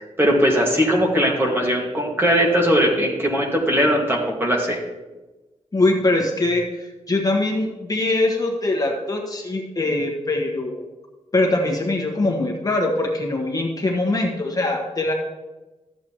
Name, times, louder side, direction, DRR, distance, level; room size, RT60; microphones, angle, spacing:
voice 1, 0.0-4.8, equal, 20° right, -1 dB, 1.9 m, -19 dB
voice 2, 5.7-10.9 11.3-15.1, left 2 dB, 30° left, 0 dB, 1.4 m, -22 dB
13.0 x 7.8 x 3.1 m, 1.1 s
wide cardioid pair, 125°, 12 cm